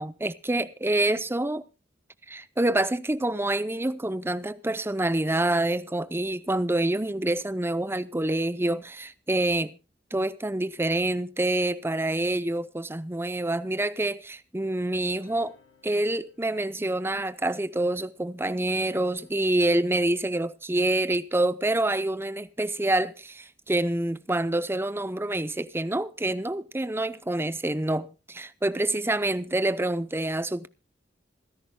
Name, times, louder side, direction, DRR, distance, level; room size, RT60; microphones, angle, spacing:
voice 1, 0.0-1.6 2.3-9.8 10.1-15.5 15.8-30.7, right 1 dB, 15° right, 0.7 m, -27 dB
sound 1, 14.6-17.8 18.7-20.1, left 4 dB, 60° left, 4.9 m, -58 dB
26.5 x 11.0 x 2.3 m
head